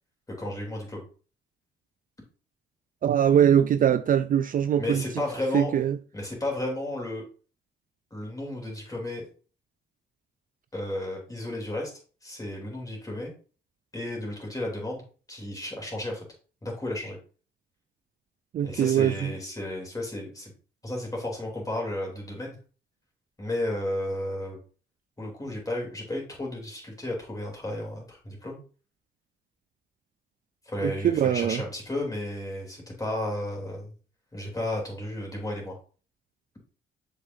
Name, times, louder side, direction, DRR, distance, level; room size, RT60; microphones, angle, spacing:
voice 1, 0.3-1.1 4.8-5.7 6.1-7.3 8.1-9.3 10.7-11.9 12.2-13.3 13.9-15.0 15.3-16.2 16.6-17.2 18.6-20.5 20.8-22.6 23.4-24.6 25.2-28.6 30.6-33.9 34.3-35.8, left 1 dB, 15° left, 3.3 m, -33 dB
voice 2, 3.0-5.0 5.5-6.0 18.5-19.3 30.8-31.6, right 9 dB, 45° right, 0.4 m, -22 dB
7.1 x 5.3 x 2.7 m
cardioid pair, 90°, 20 cm